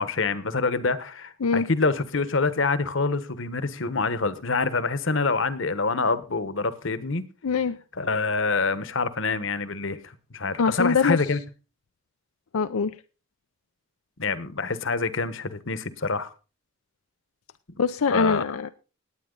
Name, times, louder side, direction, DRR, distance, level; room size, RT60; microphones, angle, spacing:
voice 1, 0.0-7.2 8.0-10.0 10.3-11.4 14.2-16.3 18.1-18.6, left 3 dB, 60° left, 1.2 m, -26 dB
voice 2, 7.4-7.8 10.6-11.2 12.5-13.0 17.8-18.7, left 5 dB, 90° left, 0.6 m, -23 dB
18.5 x 9.0 x 3.9 m
head